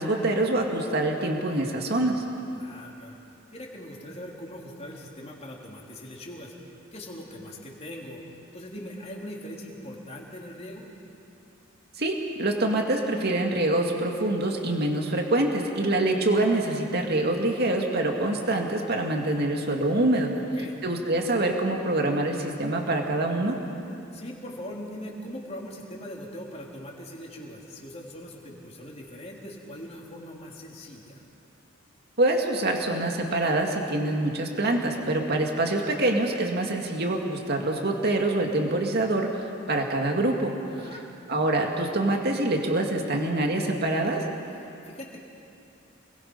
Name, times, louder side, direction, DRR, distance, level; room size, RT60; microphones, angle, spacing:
voice 1, 0.0-2.2 12.0-20.3 20.8-23.6 32.2-39.4 39.7-40.5 41.3-44.2, right 2 dB, 55° right, 2 dB, 2.3 m, -25 dB
voice 2, 2.5-3.2 3.5-8.2 8.5-10.9 20.3-20.8 24.1-31.2 40.7-41.1 44.6-45.2, left 1 dB, 30° left, -2 dB, 3.4 m, -41 dB
29.0 x 21.5 x 5.6 m, 2.7 s
head